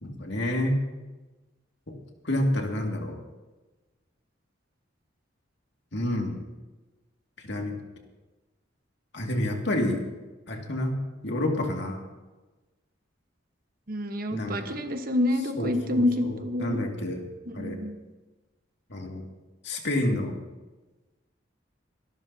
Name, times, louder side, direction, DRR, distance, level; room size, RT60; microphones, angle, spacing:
voice 1, 0.0-0.8 2.2-3.2 5.9-6.4 7.4-7.8 9.1-10.0 10.5-12.0 14.3-14.8 15.6-17.2 17.5-17.8 18.9-19.2 19.6-20.3, left 1 dB, 65° left, 1 dB, 2.2 m, -29 dB
voice 2, 13.9-16.8 17.6-17.9, left 1 dB, 50° right, 6 dB, 1.3 m, -27 dB
25.5 x 12.0 x 2.8 m, 1.2 s
head